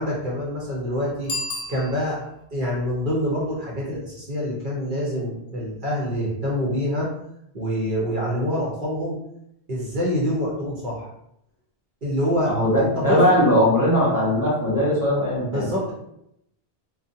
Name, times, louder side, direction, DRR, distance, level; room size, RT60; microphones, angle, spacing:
voice 1, 0.0-1.3 1.7-2.2 2.5-7.1 7.5-9.2 9.7-11.1 12.0-12.5 12.8-13.4 15.5-15.9, equal, 55° right, -5 dB, 0.8 m, -26 dB
Bicycle bell, 1.2-2.4, left 1 dB, 60° left, 0.7 m, -32 dB
voice 2, 12.4-15.7, equal, 20° left, -9 dB, 0.8 m, -20 dB
2.5 x 2.2 x 2.6 m, 0.77 s
omnidirectional pair, 1.1 m